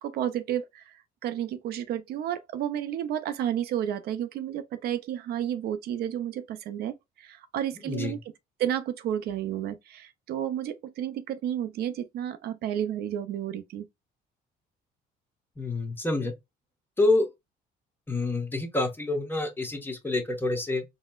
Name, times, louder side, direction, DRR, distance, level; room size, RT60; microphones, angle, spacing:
voice 1, 0.0-8.2 8.6-13.8, right 10 dB, 70° right, 0.5 m, -31 dB
voice 2, 7.9-8.2 15.6-16.3 17.0-17.3 18.1-20.8, left 2 dB, 10° left, 1.0 m, -27 dB
4.0 x 2.0 x 2.3 m
cardioid pair, 110°, 17 cm